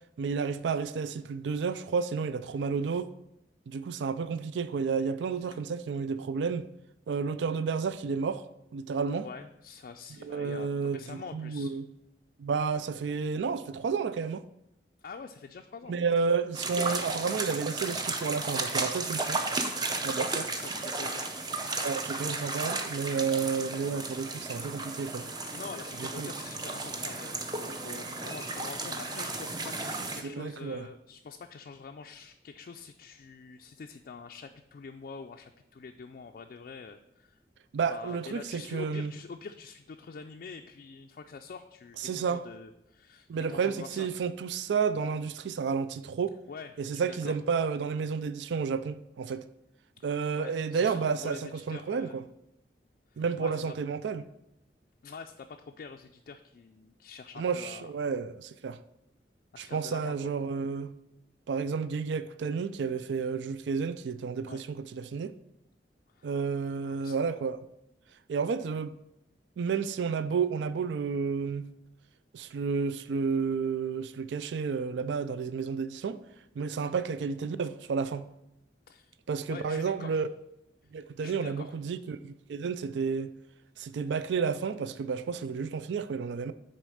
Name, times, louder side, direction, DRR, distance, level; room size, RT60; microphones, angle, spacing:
voice 1, 0.2-3.1 3.7-6.7 7.1-8.4 8.7-9.3 10.2-11.9 12.4-14.4 15.9-19.4 20.0-20.4 21.8-25.3 26.0-26.3 30.2-30.9 37.7-39.1 42.0-42.4 43.3-46.3 46.8-49.4 50.0-52.2 53.2-54.2 57.4-58.8 59.6-60.9 61.5-65.3 66.2-67.7 68.3-69.0 69.6-71.7 72.3-76.2 76.6-78.3 79.3-80.3 80.9-83.3 83.8-86.5, right 5 dB, 80° right, 0.4 m, -31 dB
voice 2, 9.2-11.8 15.0-15.9 20.2-21.3 25.5-37.4 37.9-44.1 46.5-47.4 50.4-52.2 53.1-53.7 55.0-57.9 59.5-60.3 64.5-64.6 66.1-66.3 66.8-67.2 76.8-77.0 78.9-79.2 79.5-80.2 81.2-81.7, left 5 dB, 50° left, 0.3 m, -45 dB
sound 1, 16.5-30.2, right 3 dB, 25° right, 0.6 m, -34 dB
6.4 x 4.3 x 6.2 m
head